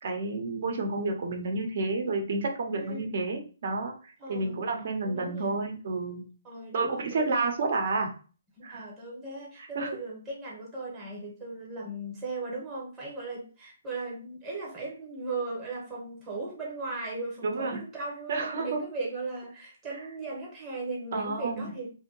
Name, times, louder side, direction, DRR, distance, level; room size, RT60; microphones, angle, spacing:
voice 1, 0.0-6.2 6.7-8.1 8.6-8.8 9.6-9.9 17.4-17.8 18.3-18.8 21.1-21.7, right 3 dB, 50° right, 3 dB, 0.7 m, -30 dB
voice 2, 2.7-3.1 4.2-4.6 5.0-5.5 6.4-7.3 8.7-21.9, right 3 dB, 15° right, -3 dB, 0.9 m, -37 dB
2.6 x 2.1 x 3.8 m, 0.37 s
hypercardioid pair, 165°, 0 cm